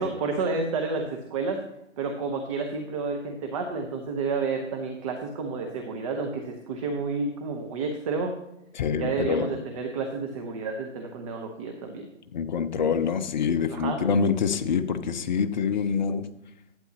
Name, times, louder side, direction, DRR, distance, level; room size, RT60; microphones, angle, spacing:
voice 1, 0.0-1.6 2.0-8.3 9.0-12.1 13.7-14.0, right 4 dB, 25° right, 3 dB, 0.9 m, -30 dB
voice 2, 8.7-9.5 12.3-16.3, left 6 dB, 40° left, 9 dB, 0.6 m, -26 dB
11.5 x 8.8 x 2.9 m, 0.82 s
figure-of-eight pair, 140°, 38 cm